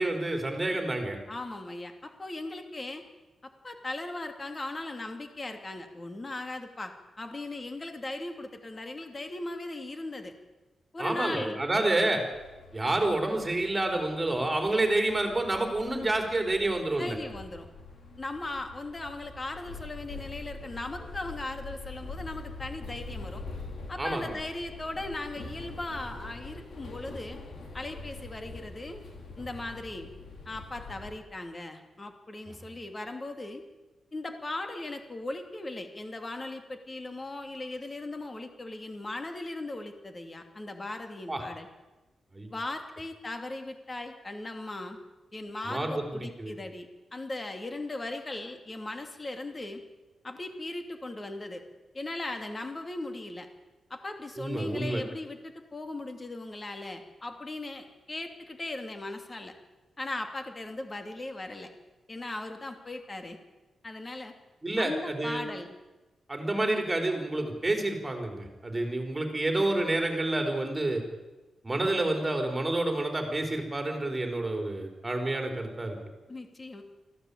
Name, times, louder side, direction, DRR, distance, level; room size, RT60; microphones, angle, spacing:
voice 1, 0.0-1.2 11.0-12.2 12.7-17.2 24.0-24.3 32.6-32.7 41.3-41.4 42.3-42.5 45.6-46.5 54.4-55.0 64.6-65.4 66.3-71.0 71.6-76.0, right 2 dB, 15° right, 3 dB, 4.5 m, -29 dB
voice 2, 1.3-3.0 3.4-10.3 10.9-11.6 17.0-17.7 18.2-23.4 23.9-27.4 27.7-29.0 29.4-30.1 30.5-33.6 34.1-41.7 42.5-45.0 45.3-49.8 50.2-51.6 51.9-53.5 53.9-59.5 60.0-61.7 62.1-63.4 63.8-64.3 64.8-65.8 76.3-76.8, left 2 dB, 25° left, 6 dB, 2.5 m, -38 dB
sound 1, 12.3-31.1, left 3 dB, 60° left, 4.5 m, -44 dB
24.5 x 15.5 x 8.6 m, 1.1 s
wide cardioid pair, 140°, 0 cm